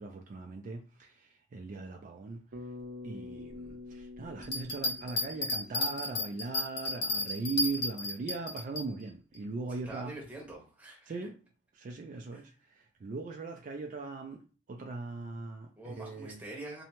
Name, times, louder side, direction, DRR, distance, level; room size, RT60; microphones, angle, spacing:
voice 1, 0.0-2.4 3.0-10.2 11.1-11.4 11.7-14.4 14.7-15.7 16.0-16.4, right 4 dB, 50° right, 0.3 m, -39 dB
Bass guitar, 2.5-6.9, left 3 dB, 85° right, 0.6 m, -47 dB
Bell, 4.4-8.8 9.3-9.4, left 2 dB, 70° left, 0.8 m, -33 dB
voice 2, 9.7-11.2 12.3-12.4 15.8-16.8, right 2 dB, 10° right, 0.9 m, -45 dB
2.7 x 2.1 x 2.9 m
head